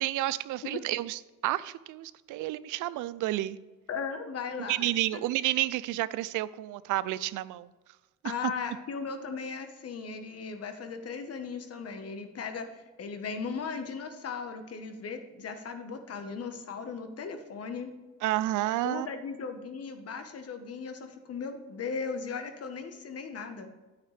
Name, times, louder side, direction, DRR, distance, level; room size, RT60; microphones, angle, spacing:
voice 1, 0.0-3.6 4.7-7.7 8.2-8.3 18.2-19.1, right 15 dB, 85° right, 17 dB, 0.5 m, -30 dB
voice 2, 3.9-5.2 8.2-12.7 13.0-17.9 18.8-23.7, left 5 dB, 55° left, 7 dB, 1.3 m, -37 dB
9.5 x 8.9 x 3.4 m, 1.2 s
cardioid pair, 90°, 30 cm